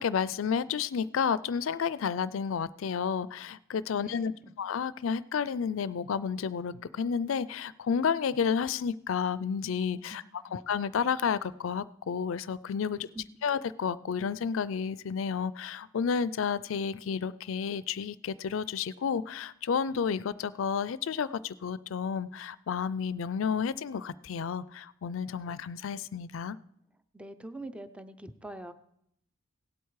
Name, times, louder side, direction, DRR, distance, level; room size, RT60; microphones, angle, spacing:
voice 1, 0.0-4.3 4.6-10.2 10.5-13.1 13.4-26.6, left 6 dB, 70° left, 18 dB, 0.4 m, -31 dB
voice 2, 4.0-4.5 10.1-10.3 13.1-13.2 27.1-28.7, right 2 dB, 5° right, 11 dB, 0.5 m, -44 dB
17.0 x 8.1 x 4.7 m, 0.73 s
head